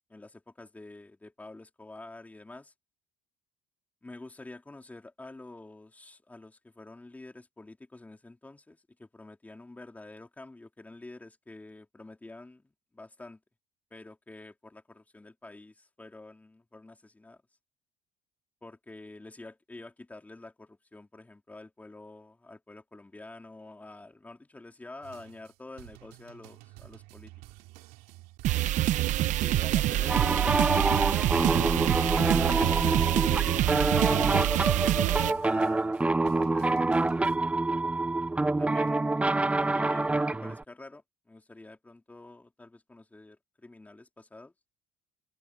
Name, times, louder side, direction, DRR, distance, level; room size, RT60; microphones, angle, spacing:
voice 1, 0.1-2.7 4.0-12.7 12.9-13.4 13.9-17.4 18.6-27.3 29.4-31.1 31.5-32.9 33.9-35.8 36.3-37.0 38.6-39.0 39.6-44.5, left 2 dB, 10° left, 3.1 m, -47 dB
sound 1, 25.0-37.4, right 19 dB, 85° right, 2.4 m, -52 dB
sound 2, 28.4-35.3, right 14 dB, 55° right, 0.8 m, -26 dB
sound 3, 30.1-40.6, right 2 dB, 10° right, 0.4 m, -27 dB
cardioid pair, 125°, 15 cm